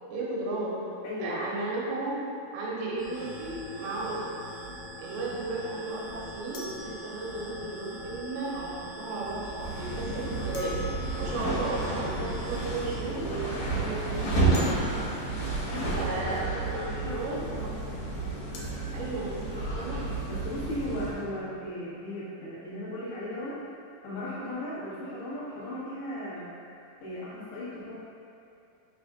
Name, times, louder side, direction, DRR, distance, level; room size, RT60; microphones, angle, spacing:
voice 1, 0.1-0.8 1.2-2.2 2.5-4.3 5.0-10.8 11.2-14.8 15.9-17.7 18.1-18.7 18.9-20.0, right 2 dB, 90° right, -6 dB, 3.5 m, -35 dB
voice 2, 1.0-1.5 15.6-16.1 16.7-17.2 20.2-23.6 24.0-26.5 27.0-28.0, left 1 dB, 85° left, -9 dB, 3.8 m, -36 dB
sound 1, 3.0-13.0, equal, 65° right, 1.4 m, -43 dB
sound 2, 3.1-3.2 6.5-7.8 10.5-11.9 14.5-15.8 18.5-18.7, left 1 dB, 70° left, 2.3 m, -45 dB
sound 3, 9.5-21.2, right 2 dB, 55° left, 2.3 m, -31 dB
9.4 x 5.1 x 2.5 m, 2.7 s
omnidirectional pair, 4.9 m